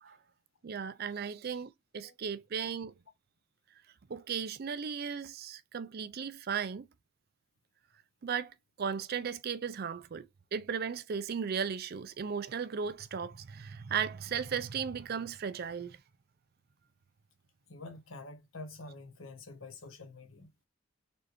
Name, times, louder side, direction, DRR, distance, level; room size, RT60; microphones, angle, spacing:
voice 1, 0.6-2.9 4.1-6.9 8.2-16.0, right 6 dB, 50° right, 0.4 m, -36 dB
voice 2, 17.7-20.5, left 2 dB, 90° left, 1.2 m, -47 dB
4.3 x 3.2 x 3.0 m
head